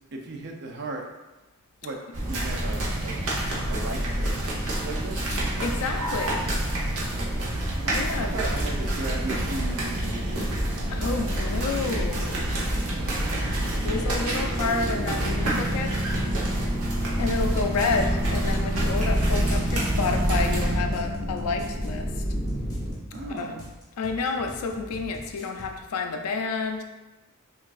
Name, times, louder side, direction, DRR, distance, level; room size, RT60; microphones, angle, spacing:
voice 1, 0.1-1.0 1.8-2.0 2.3-3.2 3.7-4.1 4.8-5.2 7.8-10.7 11.0-11.1 12.7-13.9 23.1-23.6, right 2 dB, 50° right, 2 dB, 0.5 m, -36 dB
sound 1, 2.1-20.8, right 1 dB, 70° right, 0.9 m, -27 dB
voice 2, 5.6-6.4 7.9-8.3 10.9-12.4 13.8-16.0 17.2-22.2 23.3-23.6 24.0-26.8, left 4 dB, 90° left, 4 dB, 0.4 m, -29 dB
sound 2, 17.8-22.9, equal, 35° right, 1.1 m, -32 dB
sound 3, 18.9-25.8, equal, 15° left, 0.7 m, -43 dB
5.6 x 2.5 x 2.4 m, 1.1 s
head